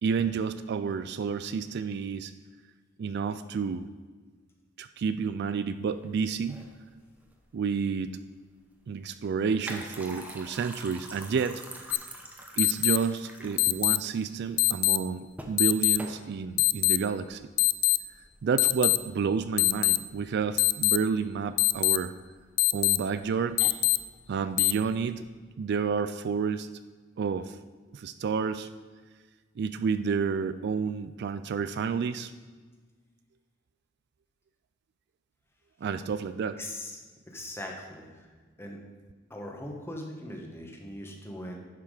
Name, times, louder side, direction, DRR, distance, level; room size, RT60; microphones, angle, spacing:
voice 1, 0.0-2.3 3.0-3.9 4.8-6.6 7.5-8.2 8.9-11.9 12.6-17.5 18.4-22.1 22.7-23.6 24.3-25.2 25.6-26.7 27.2-27.6 27.9-28.7 29.6-32.3 35.8-36.6, right 5 dB, 55° right, 11 dB, 0.3 m, -30 dB
sound 1, 5.7-25.3, right 1 dB, 10° right, 0.9 m, -48 dB
sound 2, 11.9-12.0 12.6-13.0 13.6-14.0 14.6-15.0 15.6-16.0 16.6-17.0 17.6-18.0 18.6-19.0 19.6-20.0 20.6-21.0 21.6-22.0 22.6-23.0 23.6-24.0 24.6-24.7, left 22 dB, 80° left, 0.4 m, -22 dB
voice 2, 36.6-37.0 37.3-38.8 39.3-41.6, left 1 dB, 10° left, 1 dB, 1.3 m, -40 dB
10.5 x 5.8 x 4.9 m, 1.4 s
head